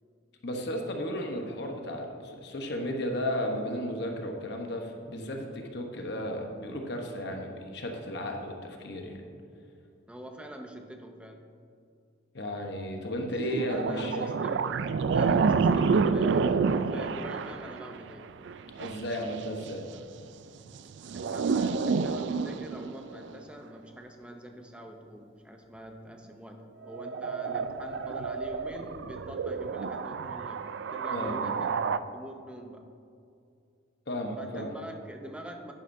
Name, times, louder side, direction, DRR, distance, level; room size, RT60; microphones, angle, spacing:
voice 1, 0.4-9.2 12.3-14.3 18.8-19.9 31.1-31.4 34.1-34.7, equal, 55° left, 2 dB, 0.9 m, -34 dB
voice 2, 10.1-11.5 13.2-13.3 13.7-18.3 19.9-20.0 21.1-31.7 32.1-32.9 34.4-35.7, right 1 dB, 5° right, 3 dB, 0.5 m, -44 dB
sound 1, 13.3-19.7 20.7-23.4 26.8-32.0, right 5 dB, 60° right, 0.3 m, -29 dB
10.5 x 10.0 x 2.6 m, 2.4 s
head